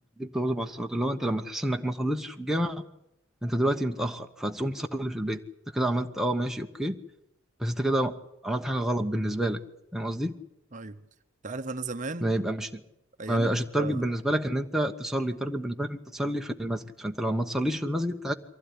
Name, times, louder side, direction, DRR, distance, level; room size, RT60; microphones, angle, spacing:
voice 1, 0.2-2.8 3.4-5.4 5.7-7.0 7.6-8.1 8.4-9.6 9.9-10.3 12.2-12.8 13.3-18.3, right 1 dB, ahead, 3 dB, 1.0 m, -28 dB
voice 2, 10.7-11.0 11.4-12.3 13.2-14.0, right 3 dB, 35° right, 9 dB, 0.9 m, -36 dB
23.5 x 16.0 x 10.0 m, 0.83 s
head